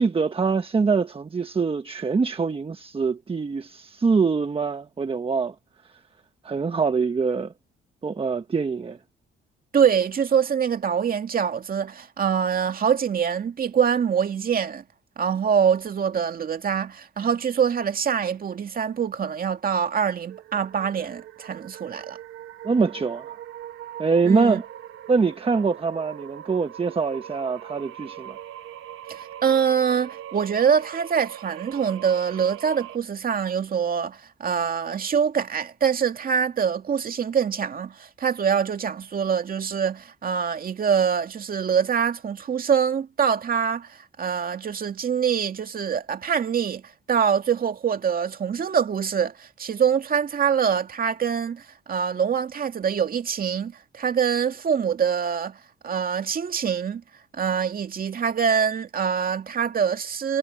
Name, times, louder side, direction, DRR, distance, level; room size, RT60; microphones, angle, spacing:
voice 1, 0.0-5.5 6.4-7.5 8.0-9.0 22.6-23.4 24.0-24.6 25.1-28.4, right 4 dB, 30° right, 1.2 m, -24 dB
voice 2, 9.7-14.8 15.2-22.2 24.3-24.6 29.1-46.8 47.1-57.0 57.3-60.4, right 7 dB, 45° right, 2.3 m, -24 dB
sound 1, 20.3-33.0, right 11 dB, 85° right, 1.4 m, -41 dB
cardioid pair, 90°, 20 cm